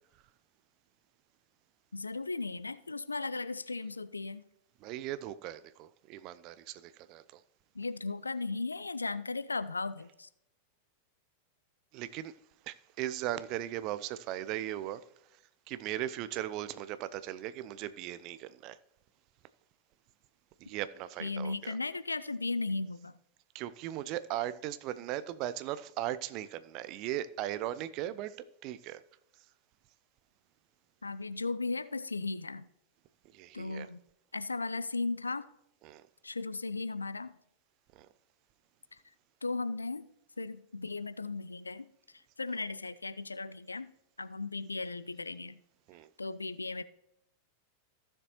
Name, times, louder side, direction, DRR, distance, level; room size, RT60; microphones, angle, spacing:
voice 1, 1.9-4.4 7.8-10.3 21.2-23.1 31.0-32.7 33.5-34.0 34.3-35.5 36.2-37.3 39.4-40.1 40.4-41.9 42.4-43.9 44.2-45.6 46.2-46.8, left 3 dB, 80° left, 0.4 m, -36 dB
voice 2, 4.8-7.2 11.9-12.3 12.7-15.0 15.7-18.8 20.6-21.8 23.5-28.3 28.6-29.0 33.3-33.9 35.8-36.0 38.0-38.1 45.9-46.1, right 13 dB, 40° right, 0.5 m, -38 dB
15.0 x 6.7 x 3.0 m
figure-of-eight pair, 90°, 0 cm